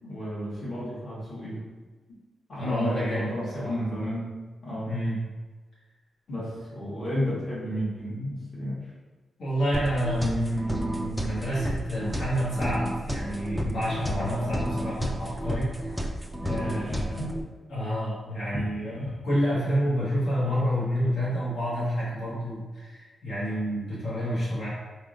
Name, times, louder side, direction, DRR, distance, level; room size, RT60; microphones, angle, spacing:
voice 1, 0.0-1.6 2.5-4.3 4.6-5.0 6.3-8.8 14.0-14.7 16.5-17.3 18.5-18.6 19.0-19.1, equal, 45° left, -8 dB, 1.4 m, -32 dB
voice 2, 2.6-3.7 4.9-5.2 9.4-16.1 16.4-17.2 17.7-24.7, equal, 75° left, -8 dB, 1.1 m, -29 dB
sound 1, 9.7-17.4, equal, 5° left, 0.3 m, -32 dB
4.2 x 3.4 x 2.5 m, 1.3 s
wide cardioid pair, 165°, 0 cm